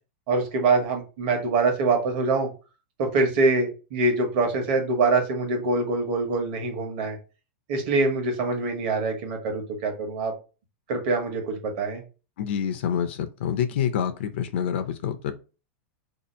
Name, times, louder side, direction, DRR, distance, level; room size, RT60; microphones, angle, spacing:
voice 1, 0.3-2.5 3.0-7.2 7.7-10.3 10.9-12.0, right 3 dB, 45° right, 2 dB, 1.0 m, -24 dB
voice 2, 12.4-15.3, left 8 dB, 60° left, 8 dB, 0.4 m, -27 dB
2.8 x 2.4 x 4.1 m, 0.33 s
supercardioid pair, 170°, 7 cm